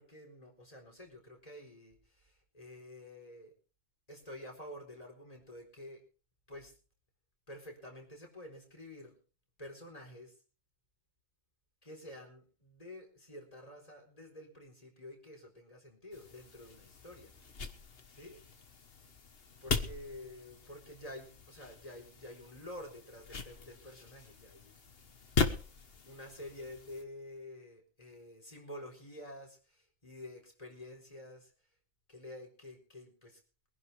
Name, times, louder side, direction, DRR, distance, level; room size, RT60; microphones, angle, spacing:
voice 1, 0.0-3.5 4.1-6.0 6.5-6.7 7.5-9.2 9.6-10.3 11.8-17.6 18.1-18.4 19.6-24.7 26.1-31.5 32.1-33.4, left 1 dB, 30° left, 2 dB, 4.2 m, -49 dB
sound 1, 16.1-27.0, left 5 dB, 55° left, 1.5 m, -40 dB
22.5 x 11.0 x 3.4 m, 0.38 s
omnidirectional pair, 1.2 m